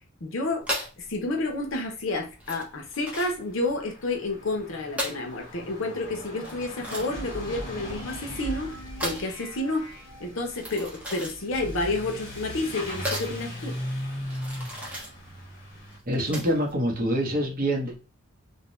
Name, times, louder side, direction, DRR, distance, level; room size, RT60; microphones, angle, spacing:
voice 1, 0.2-0.6 1.0-9.9 10.2-13.8, left 2 dB, 60° left, 2 dB, 0.7 m, -30 dB
sound 1, 0.6-16.7, equal, 5° right, 0.8 m, -37 dB
Truck / Accelerating revving vroom, 2.3-2.4 2.6-16.0, equal, 40° left, 1.3 m, -39 dB
sound 2, 7.4-10.7, left 1 dB, 80° left, 1.0 m, -45 dB
voice 2, 16.1-18.0, equal, 40° right, 1 dB, 0.8 m, -25 dB
2.6 x 2.1 x 3.1 m, 0.33 s
head